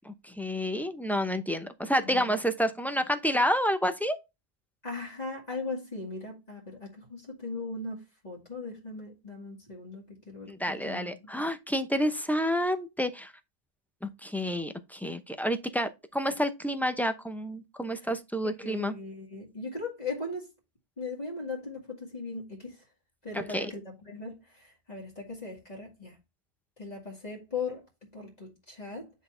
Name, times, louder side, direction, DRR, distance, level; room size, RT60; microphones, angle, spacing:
voice 1, 0.0-4.2 10.5-13.3 14.0-18.9 23.3-23.7, equal, ahead, 0.6 m, -29 dB
voice 2, 4.8-11.3 18.0-18.1 18.6-20.5 21.0-22.8 23.2-26.2 26.8-29.1, left 3 dB, 40° left, 2.1 m, -39 dB
9.4 x 4.1 x 3.3 m
omnidirectional pair, 1.0 m